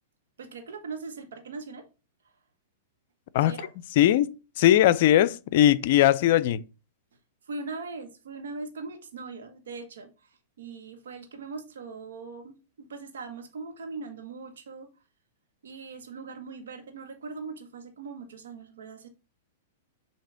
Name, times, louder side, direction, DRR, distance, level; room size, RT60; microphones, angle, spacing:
voice 1, 0.4-1.9 3.4-3.7 7.5-14.9 15.6-19.1, right 4 dB, 70° right, 1.4 m, -40 dB
voice 2, 4.0-4.3 4.6-6.6, left 12 dB, 55° left, 0.4 m, -19 dB
6.6 x 2.8 x 5.7 m
hypercardioid pair, 105°, 0 cm